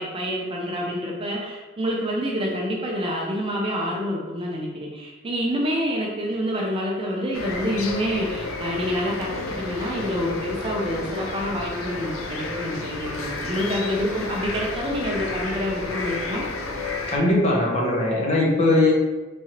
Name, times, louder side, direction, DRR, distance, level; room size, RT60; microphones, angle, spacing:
voice 1, 0.0-9.3 9.6-16.4, equal, 25° right, -2 dB, 0.4 m, -27 dB
sound 1, 7.3-17.2, left 3 dB, 70° left, 0.5 m, -31 dB
voice 2, 17.1-18.9, left 2 dB, 30° left, -4 dB, 0.7 m, -20 dB
3.6 x 3.0 x 2.9 m, 1.3 s
head